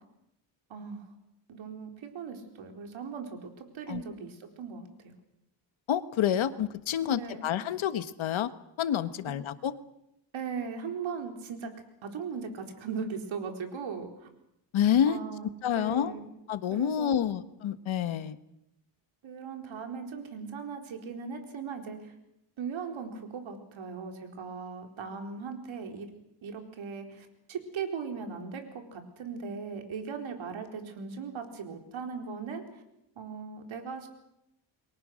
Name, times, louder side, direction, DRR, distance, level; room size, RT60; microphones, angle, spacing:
voice 1, 0.7-1.1 1.5-4.9 7.1-7.5 10.3-11.7 12.0-14.3 15.1-16.3 16.7-17.3 19.2-22.1 22.6-26.1 26.4-32.6 33.2-34.1, right 5 dB, 80° right, 4 dB, 4.3 m, -38 dB
voice 2, 5.9-8.5 8.8-9.7 14.7-15.2 15.6-16.1 16.5-18.4, left 9 dB, 85° left, 12 dB, 1.5 m, -28 dB
29.5 x 23.0 x 6.5 m, 0.84 s
cardioid pair, 125°, 46 cm